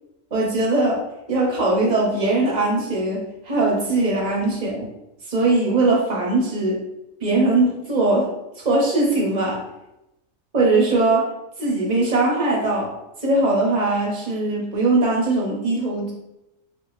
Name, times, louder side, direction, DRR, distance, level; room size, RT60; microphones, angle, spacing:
voice 1, 0.3-1.0 1.3-4.9 5.3-6.8 7.2-8.3 8.6-9.6 10.5-11.3 11.6-12.9 13.2-16.1, right 2 dB, 35° right, -2 dB, 0.9 m, -20 dB
2.8 x 2.5 x 3.9 m, 0.90 s
omnidirectional pair, 1.4 m